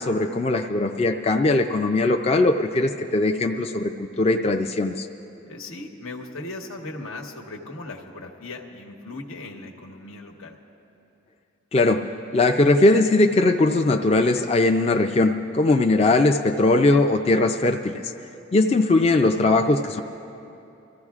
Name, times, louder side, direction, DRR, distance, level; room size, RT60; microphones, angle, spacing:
voice 1, 0.0-5.1 11.7-12.0 12.3-18.1 18.5-20.0, left 2 dB, 30° left, 4 dB, 0.3 m, -20 dB
voice 2, 5.4-10.6 19.0-19.3, left 2 dB, 90° left, 1 dB, 1.2 m, -38 dB
26.0 x 14.5 x 2.4 m, 2.8 s
head